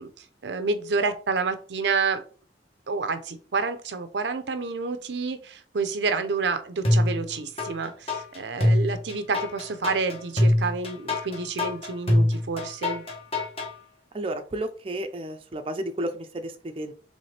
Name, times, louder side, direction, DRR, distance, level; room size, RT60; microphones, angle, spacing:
voice 1, 0.0-2.2 2.9-13.0, right 4 dB, 80° right, 9 dB, 0.6 m, -29 dB
sound 1, 6.8-7.7 8.1-13.7, left 1 dB, 35° left, 1.1 m, -23 dB
voice 2, 14.1-16.9, right 1 dB, 30° right, 5 dB, 0.5 m, -32 dB
4.2 x 3.2 x 3.2 m, 0.40 s
head